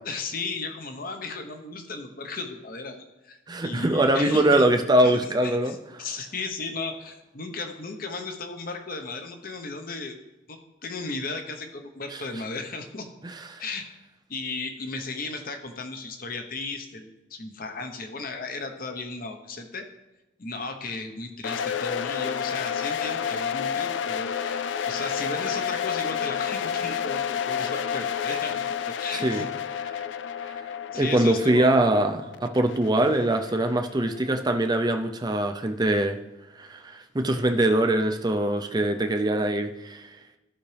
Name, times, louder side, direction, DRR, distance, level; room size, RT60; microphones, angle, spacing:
voice 1, 0.0-3.4 3.6-4.6 5.0-10.1 10.5-13.1 13.6-13.9 14.3-19.9 20.4-29.5 29.9-30.0 30.9-31.8, left 3 dB, 45° left, 6 dB, 0.9 m, -35 dB
voice 2, 3.5-5.8 13.2-13.6 29.1-29.4 30.9-36.2 36.6-40.0, right 1 dB, 20° right, 6 dB, 0.5 m, -23 dB
sound 1, 21.4-34.3, left 8 dB, 65° left, 0.3 m, -30 dB
13.5 x 5.9 x 3.4 m, 1.0 s
head